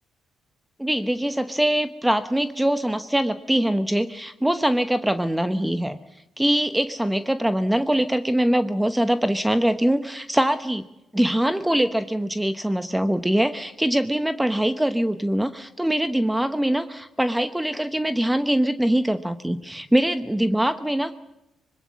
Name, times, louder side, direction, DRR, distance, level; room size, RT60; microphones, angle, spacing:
voice 1, 0.8-6.0 6.4-10.8 11.1-21.1, right 1 dB, 5° right, 10 dB, 1.0 m, -23 dB
24.5 x 21.0 x 7.3 m, 0.90 s
cardioid pair, 90°, 0 cm